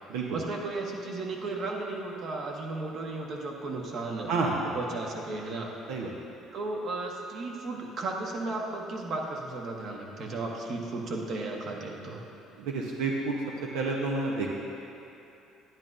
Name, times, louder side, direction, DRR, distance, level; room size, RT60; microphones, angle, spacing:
voice 1, 0.3-4.3 4.7-5.7 6.5-12.2, right 2 dB, 55° right, 0 dB, 1.2 m, -34 dB
voice 2, 4.3-4.7 5.9-6.1 12.6-13.4 13.7-14.5, right 3 dB, 90° right, -1 dB, 0.8 m, -29 dB
11.0 x 10.5 x 2.6 m, 2.8 s
cardioid pair, 105°, 0 cm